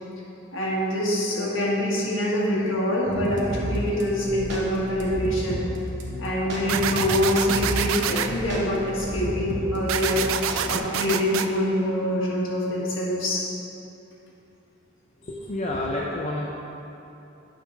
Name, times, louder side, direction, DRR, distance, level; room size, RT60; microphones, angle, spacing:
voice 1, 0.5-5.6 6.2-13.4, left 1 dB, 65° left, -5 dB, 1.6 m, -25 dB
sound 1, 3.1-10.8, equal, 60° right, 1.0 m, -32 dB
sound 2, 6.7-8.3 9.9-11.5, right 9 dB, 75° right, 0.3 m, -27 dB
voice 2, 15.3-16.5, left 1 dB, 35° left, -3 dB, 0.5 m, -29 dB
8.4 x 3.8 x 5.7 m, 2.9 s
head